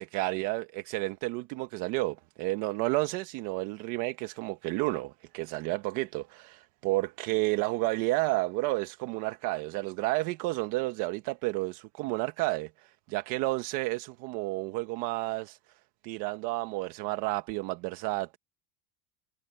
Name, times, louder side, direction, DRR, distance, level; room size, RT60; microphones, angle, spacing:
voice 1, 0.0-15.6 16.0-18.4, right 20 dB, 55° right, 1.4 m, -31 dB
supercardioid pair, 150°, 36 cm